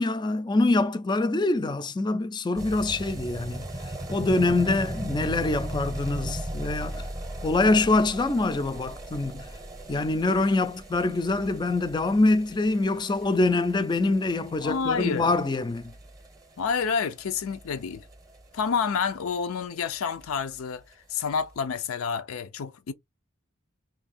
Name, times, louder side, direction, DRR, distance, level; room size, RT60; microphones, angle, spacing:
voice 1, 0.0-7.1 7.4-9.5 9.9-15.9, left 2 dB, 20° left, 0.3 m, -25 dB
sound 1, 2.6-19.3 19.6-19.7 19.9-20.0 20.2-20.3 20.6-20.7 21.3-21.4, right 1 dB, 15° right, 0.7 m, -38 dB
voice 2, 14.6-15.3 16.6-18.0 18.5-20.8 21.1-22.9, left 6 dB, 85° left, 0.5 m, -29 dB
2.7 x 2.5 x 4.1 m
head